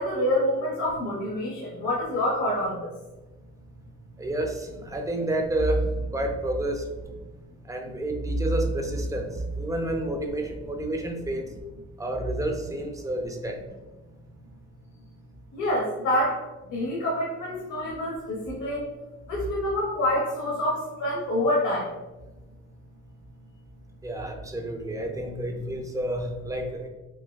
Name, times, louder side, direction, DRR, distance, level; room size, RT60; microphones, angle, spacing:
voice 1, 0.0-2.9 15.5-16.4 16.7-18.9 19.3-21.9, left 1 dB, 75° left, -5 dB, 1.1 m, -27 dB
voice 2, 4.2-6.8 7.6-11.5 12.0-13.6 24.0-26.9, right 1 dB, 10° right, 3 dB, 0.5 m, -29 dB
5.9 x 2.2 x 2.3 m, 1.1 s
cardioid pair, 90°, 30 cm